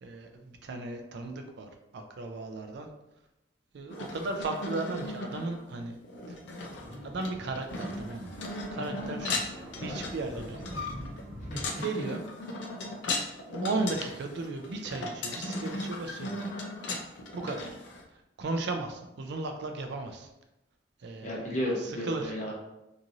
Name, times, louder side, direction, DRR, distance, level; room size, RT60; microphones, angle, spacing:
voice 1, 0.0-2.9 3.7-6.0 6.3-6.4 7.0-8.3 8.7-9.4 9.8-10.9 11.8-12.2 13.6-16.5 17.3-17.8 18.4-20.3 21.0-21.4 21.8-22.3, right 3 dB, 65° right, 5 dB, 0.4 m, -35 dB
sound 1, 3.9-18.0, left 2 dB, 70° left, 0.4 m, -37 dB
sound 2, 6.6-11.7, equal, ahead, 0.8 m, -45 dB
voice 2, 11.4-11.8 13.0-13.2 21.2-22.5, equal, 40° left, -3 dB, 0.8 m, -34 dB
2.9 x 2.5 x 2.5 m, 0.91 s
head